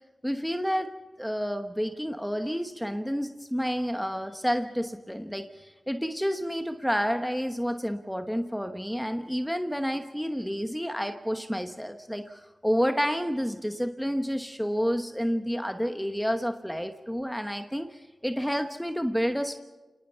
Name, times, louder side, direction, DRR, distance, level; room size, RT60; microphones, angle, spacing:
voice 1, 0.2-0.9 1.2-19.6, equal, ahead, 7 dB, 1.1 m, -30 dB
29.0 x 19.0 x 5.7 m, 1.2 s
cardioid pair, 50°, 0 cm